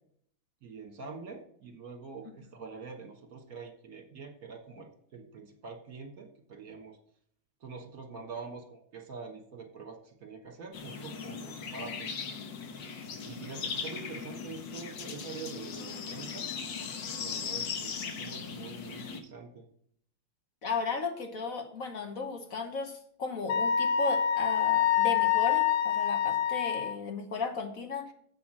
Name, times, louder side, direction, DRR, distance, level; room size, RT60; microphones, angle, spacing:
voice 1, 0.6-7.0 7.6-12.1 13.3-16.5 17.2-19.7, right 4 dB, 50° right, 5 dB, 1.6 m, -45 dB
sound 1, 10.7-19.2, left 6 dB, 65° left, 1.7 m, -38 dB
voice 2, 20.6-28.1, left 4 dB, 50° left, 5 dB, 1.3 m, -35 dB
Wind instrument woodwind instrument, 23.5-27.0, left 9 dB, 90° left, 0.7 m, -26 dB
7.7 x 5.8 x 7.3 m, 0.65 s
omnidirectional pair, 2.2 m